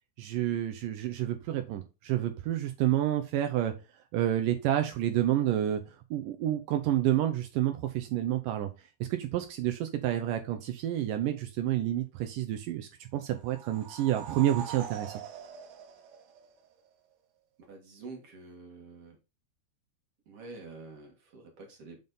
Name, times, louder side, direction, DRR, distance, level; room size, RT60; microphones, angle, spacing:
voice 1, 0.2-3.7 4.1-5.8 6.1-8.7 9.1-15.1, right 12 dB, 85° right, 6 dB, 1.9 m, -29 dB
sound 1, 13.3-16.9, right 8 dB, 65° right, 2.5 m, -43 dB
voice 2, 17.6-19.2 20.3-22.0, right 3 dB, 50° right, 2 dB, 2.0 m, -47 dB
7.5 x 5.4 x 4.0 m, 0.28 s
omnidirectional pair, 4.8 m